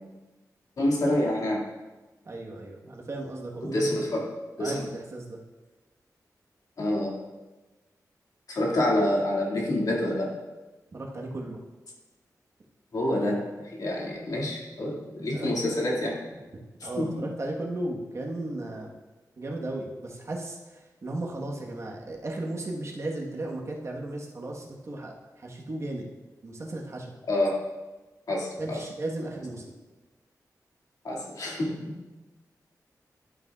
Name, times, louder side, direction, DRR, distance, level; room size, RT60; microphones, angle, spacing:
voice 1, 0.8-1.6 3.6-4.3 4.6-4.8 6.8-7.1 8.5-10.3 12.9-16.2 17.0-17.2 27.3-27.6 28.3-28.8 31.0-32.0, left 1 dB, 70° left, -3 dB, 2.2 m, -27 dB
voice 2, 2.2-3.9 4.6-5.4 10.9-11.6 15.3-15.5 16.8-18.9 19.4-26.1 26.4-27.1 28.6-29.7, right 2 dB, 45° right, -1 dB, 1.3 m, -35 dB
12.0 x 8.7 x 2.4 m, 1.2 s
wide cardioid pair, 155°, 7 cm